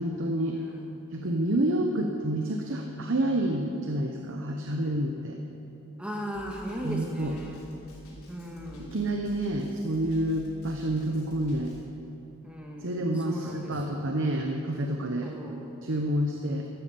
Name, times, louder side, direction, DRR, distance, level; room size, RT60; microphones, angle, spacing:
voice 1, 0.0-0.6 1.1-5.4 6.8-7.4 8.9-11.7 12.8-15.3 15.8-16.7, right 1 dB, 60° right, 3 dB, 0.9 m, -28 dB
voice 2, 0.6-1.2 6.0-7.6 8.3-8.9 12.4-14.0 15.2-15.7, equal, 5° right, 0 dB, 1.7 m, -38 dB
Drum kit, 6.3-11.8, equal, 85° left, 4.4 m, -50 dB
13.0 x 12.5 x 6.9 m, 2.8 s
head